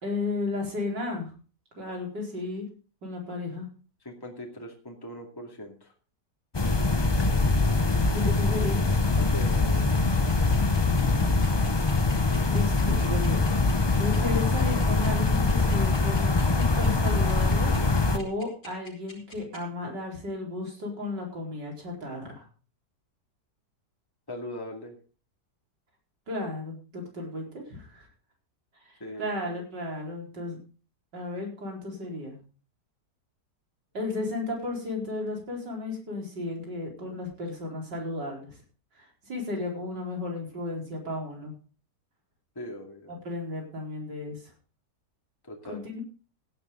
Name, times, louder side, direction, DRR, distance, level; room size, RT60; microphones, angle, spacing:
voice 1, 0.0-1.3 1.8-2.7 3.0-3.7 7.7-8.9 10.8-11.3 12.5-13.4 14.0-17.7 18.1-22.5 26.3-28.1 28.9-29.0 29.2-30.6 31.1-32.4 33.9-38.5 39.0-41.6 43.1-44.4 45.7-46.0, left 2 dB, 80° right, 0 dB, 5.2 m, -34 dB
voice 2, 4.0-5.9 9.2-9.9 24.3-25.0 29.0-29.4 42.6-43.1 45.4-45.9, left 1 dB, 10° left, 1 dB, 2.4 m, -40 dB
sound 1, 6.5-18.2, left 3 dB, 30° left, 0.4 m, -23 dB
sound 2, 10.3-19.6, left 1 dB, 80° left, 5.9 m, -47 dB
16.5 x 10.5 x 3.9 m, 0.37 s
omnidirectional pair, 1.9 m